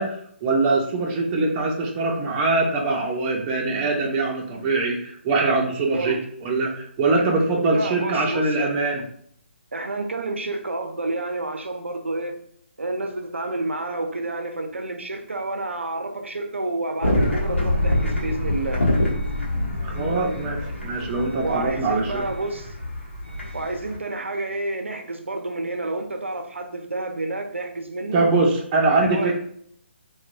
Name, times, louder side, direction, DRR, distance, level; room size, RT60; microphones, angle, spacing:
voice 1, 0.0-9.0 19.8-22.2 28.1-29.4, right 3 dB, 25° right, 0 dB, 0.4 m, -23 dB
voice 2, 7.5-8.9 9.7-12.4 12.8-18.9 21.4-22.8 23.5-28.3 28.9-29.4, right 2 dB, 90° right, 5 dB, 0.4 m, -29 dB
sound 1, 17.0-24.0, left 1 dB, 90° left, 0.8 m, -26 dB
2.8 x 2.1 x 2.5 m, 0.65 s
figure-of-eight pair, 145°, 6 cm